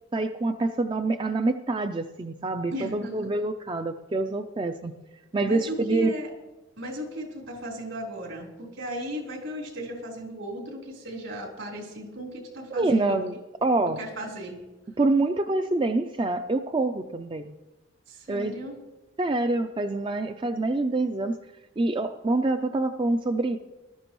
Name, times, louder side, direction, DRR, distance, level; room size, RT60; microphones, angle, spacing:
voice 1, 0.1-4.9 5.3-6.1 12.7-14.0 15.0-17.5 18.3-18.6 19.2-21.3 21.8-23.6, right 2 dB, 25° right, 7 dB, 0.4 m, -26 dB
voice 2, 2.7-3.3 5.4-6.3 6.8-13.2 14.0-14.6 18.1-18.8, equal, 75° right, -1 dB, 3.8 m, -36 dB
19.5 x 12.5 x 3.1 m, 1.1 s
head